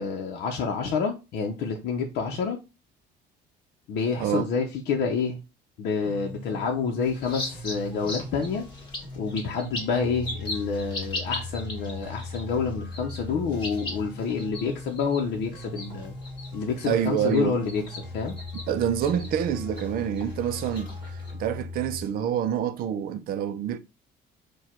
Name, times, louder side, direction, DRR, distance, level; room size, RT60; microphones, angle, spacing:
voice 1, 0.0-2.6 3.9-5.4 5.8-8.7 9.2-16.1 16.5-17.8 18.1-18.3, left 5 dB, 60° left, 0.7 m, -28 dB
sound 1, 6.0-22.0, left 2 dB, 5° right, 1.6 m, -39 dB
sound 2, 7.0-21.3, left 2 dB, 25° left, 1.4 m, -40 dB
voice 2, 16.8-17.6 18.7-20.9 21.3-23.8, right 9 dB, 55° right, 0.5 m, -27 dB
4.7 x 2.3 x 4.4 m
cardioid pair, 160°, 19 cm